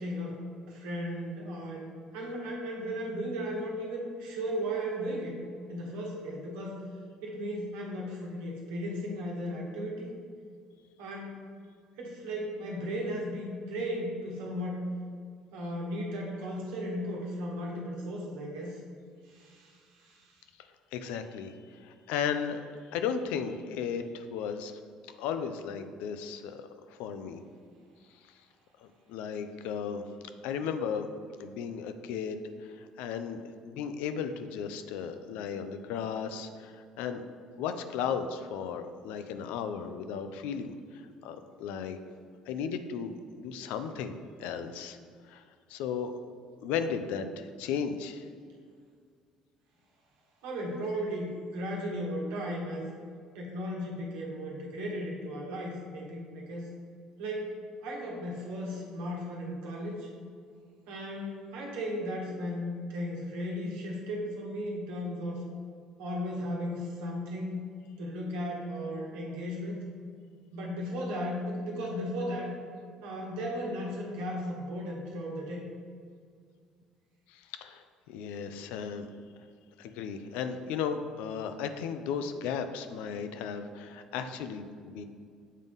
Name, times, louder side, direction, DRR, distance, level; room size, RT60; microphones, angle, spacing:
voice 1, 0.0-1.9 2.1-5.4 5.7-6.8 7.2-10.2 11.0-11.4 12.0-14.8 15.5-18.8 19.2-20.4 50.4-52.9 53.3-56.7 57.2-57.6 57.8-60.1 60.9-65.4 66.0-67.6 68.0-69.8 70.5-72.5 73.0-75.7, equal, 80° right, -2 dB, 1.2 m, -36 dB
voice 2, 20.9-22.6 22.9-24.8 25.2-26.7 27.0-27.4 29.1-30.1 30.4-31.1 31.4-37.2 37.6-40.7 41.2-42.0 42.5-45.0 45.3-45.4 45.7-46.1 46.6-48.2 77.3-79.1 79.8-85.0, left 7 dB, 80° left, 9 dB, 0.4 m, -35 dB
7.3 x 3.9 x 3.5 m, 2.1 s
supercardioid pair, 75°, 2 cm